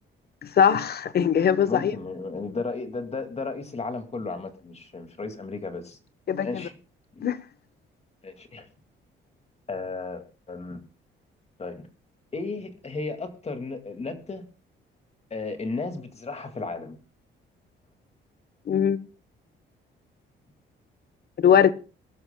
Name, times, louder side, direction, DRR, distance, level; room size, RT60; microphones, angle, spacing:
voice 1, 0.4-1.9 6.3-6.6 7.2-7.4 18.7-19.0 21.4-21.7, left 8 dB, 50° left, 1.0 m, -21 dB
voice 2, 1.7-6.0 6.4-6.7 7.1-7.2 8.2-8.7 9.7-10.8 11.6-11.9 12.3-14.4 15.3-17.0, left 3 dB, 30° left, 2.2 m, -34 dB
23.0 x 12.5 x 2.3 m
cardioid pair, 90°, 20 cm